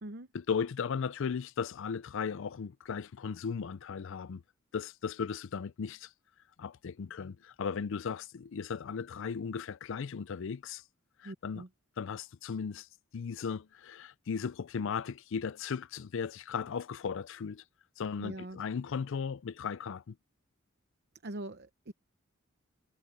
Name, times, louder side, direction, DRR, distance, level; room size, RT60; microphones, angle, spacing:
voice 1, 0.3-4.4 4.7-6.1 6.6-10.8 11.2-11.6 12.0-12.9 13.1-17.6 18.0-20.2, left 6 dB, 65° left, 0.4 m, -36 dB
voice 2, 11.2-11.7 18.2-18.6 21.2-21.9, right 1 dB, 55° right, 0.9 m, -42 dB
head